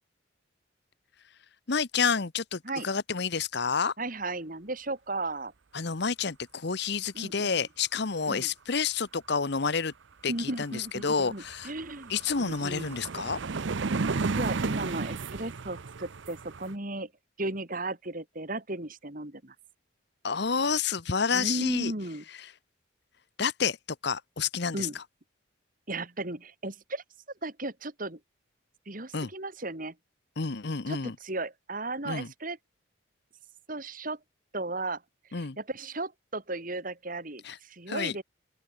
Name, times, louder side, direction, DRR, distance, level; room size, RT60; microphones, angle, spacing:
voice 1, 1.7-3.9 5.7-9.9 10.2-11.7 12.1-13.4 20.2-21.9 22.4-22.5 23.4-23.8 24.0-25.0 29.1-29.3 30.4-31.2 32.0-32.3 35.3-35.6 37.4-37.6 37.9-38.1, left 5 dB, 55° left, 0.9 m, -29 dB
voice 2, 4.0-5.5 7.1-7.7 8.3-8.5 10.3-13.0 14.1-17.1 17.4-19.5 21.3-22.2 24.7-25.0 25.9-27.0 27.4-28.2 28.9-29.9 30.9-32.6 33.7-34.2 34.5-35.0 35.3-38.2, right 2 dB, 40° right, 3.0 m, -35 dB
sound 1, 10.6-10.7 11.0-16.7, right 4 dB, 65° right, 0.7 m, -33 dB
open air
head